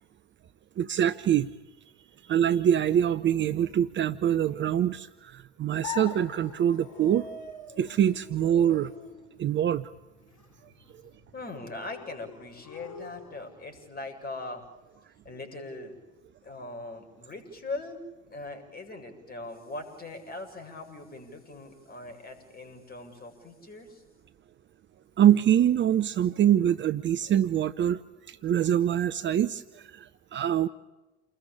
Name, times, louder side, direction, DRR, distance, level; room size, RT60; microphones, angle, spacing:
voice 1, 0.8-1.5 2.2-7.3 7.8-8.9 9.4-9.9 25.2-28.0 28.3-30.7, right 10 dB, 35° right, 13 dB, 0.9 m, -24 dB
sound 1, 5.8-13.8, left 6 dB, 50° left, 6.0 m, -44 dB
voice 2, 11.3-14.6 15.1-16.0 16.4-18.0 18.3-24.0, left 2 dB, 25° left, 6 dB, 7.6 m, -40 dB
29.0 x 21.0 x 8.8 m, 1.1 s
figure-of-eight pair, 70°, 34 cm